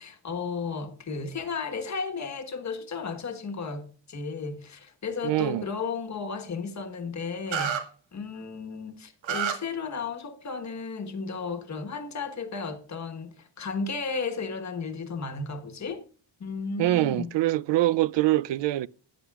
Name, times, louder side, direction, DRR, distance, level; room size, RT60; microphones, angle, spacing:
voice 1, 0.0-7.8 8.1-16.0 16.4-17.3, left 5 dB, 35° left, 1.3 m, -34 dB
voice 2, 5.2-5.6 16.8-18.9, right 16 dB, 70° right, 0.5 m, -24 dB
sound 1, 7.5-7.8 9.2-9.5, right 8 dB, 90° right, 1.9 m, -27 dB
14.0 x 9.7 x 2.4 m
wide cardioid pair, 165°, 45 cm